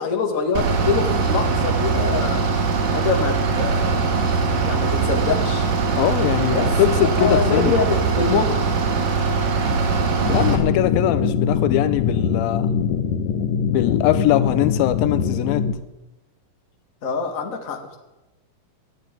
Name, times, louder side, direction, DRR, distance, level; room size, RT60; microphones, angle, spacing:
voice 1, 0.0-2.4 2.9-4.0 4.6-5.7 6.5-6.7 7.0-8.7 17.0-18.0, left 5 dB, 45° left, 3 dB, 1.0 m, -24 dB
Bus / Idling, 0.6-10.6, right 4 dB, 70° right, 3.2 m, -21 dB
voice 2, 6.0-7.8 10.3-12.7 13.6-15.7, left 13 dB, 80° left, 12 dB, 2.5 m, -21 dB
sound 1, 10.3-15.7, left 6 dB, 65° left, 1.9 m, -23 dB
11.5 x 10.5 x 8.8 m, 1.0 s
omnidirectional pair, 4.2 m